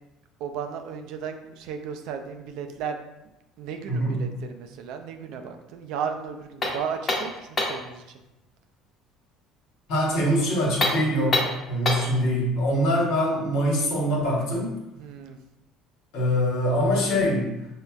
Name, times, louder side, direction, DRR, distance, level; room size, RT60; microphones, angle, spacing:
voice 1, 0.4-3.0 3.6-8.0 15.0-15.4, right 7 dB, 70° right, 5 dB, 0.4 m, -34 dB
sound 1, 6.6-7.9 10.7-12.2, left 2 dB, 35° left, 1.0 m, -26 dB
voice 2, 9.9-14.7 16.1-17.5, equal, 70° left, -3 dB, 1.2 m, -24 dB
5.2 x 2.1 x 2.3 m, 0.93 s
hypercardioid pair, 75°, 0 cm